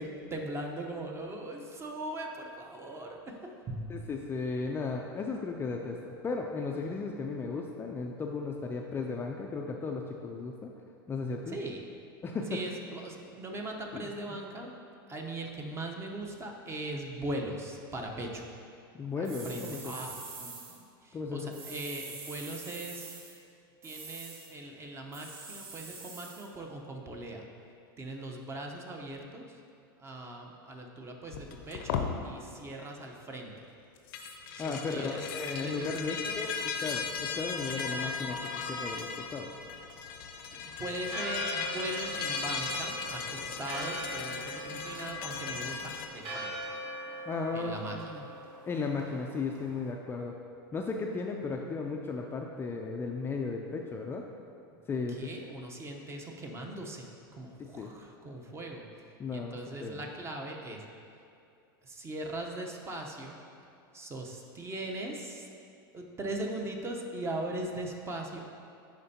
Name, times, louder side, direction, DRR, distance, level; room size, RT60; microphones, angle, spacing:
voice 1, 0.0-3.3 3.7-3.9 11.5-11.8 12.5-14.7 15.1-18.4 19.2-23.1 23.8-27.5 28.0-29.5 30.0-33.5 34.6-35.3 35.6-36.4 40.5-46.7 47.5-48.3 55.1-58.9 59.3-60.8 61.8-63.4 63.9-65.5 65.9-68.6, right 1 dB, 20° right, 1 dB, 0.8 m, -40 dB
voice 2, 3.9-10.7 11.1-11.6 12.2-12.6 13.9-14.1 18.9-19.9 21.1-21.7 34.6-39.5 47.3-48.2 48.7-50.4 50.7-54.2 54.9-55.3 57.6-57.9 59.2-60.1, left 4 dB, 20° left, 1 dB, 0.4 m, -35 dB
sound 1, 19.2-20.8 21.5-23.4 23.8-24.5 25.1-26.5, right 4 dB, 80° right, 1.0 m, -45 dB
sound 2, 31.3-32.1 34.0-46.1, left 5 dB, 70° left, 0.6 m, -37 dB
Church bell, 41.0-49.9, right 1 dB, 60° right, 1.6 m, -42 dB
10.5 x 4.4 x 2.8 m, 2.5 s
hypercardioid pair, 115°, 12 cm